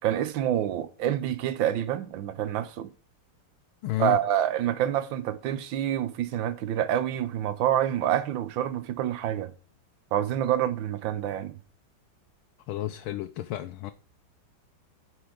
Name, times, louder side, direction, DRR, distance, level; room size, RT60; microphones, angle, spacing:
voice 1, 0.0-2.9 4.0-9.5 10.1-11.6, right 11 dB, 70° right, 1.5 m, -27 dB
voice 2, 3.8-4.2 12.7-13.9, left 14 dB, 90° left, 1.5 m, -31 dB
9.4 x 4.9 x 4.9 m
omnidirectional pair, 2.2 m